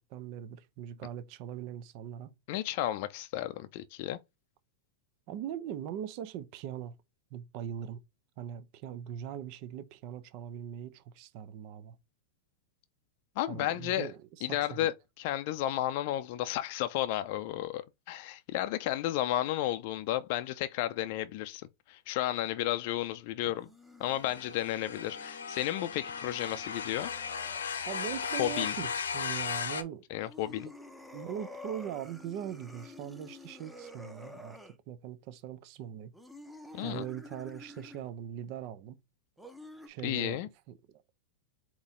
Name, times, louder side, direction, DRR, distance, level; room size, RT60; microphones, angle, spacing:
voice 1, 0.1-2.3 5.3-6.9 7.3-8.0 8.4-12.0 13.5-14.9 27.9-30.0 31.1-34.6 34.9-36.1 36.8-39.0 39.9-40.4 40.9-41.0, right 10 dB, 50° right, 0.6 m, -41 dB
voice 2, 2.5-4.2 13.4-14.1 14.4-23.7 24.0-27.1 28.4-28.7 30.1-30.7 36.7-37.0 40.0-40.5, left 14 dB, 55° left, 0.4 m, -33 dB
sound 1, 23.5-28.3 30.1-34.8 36.1-38.1 39.4-39.9, left 2 dB, ahead, 0.8 m, -50 dB
sound 2, 24.1-29.8, left 6 dB, 85° left, 0.7 m, -36 dB
4.0 x 3.0 x 3.7 m
hypercardioid pair, 110°, 0 cm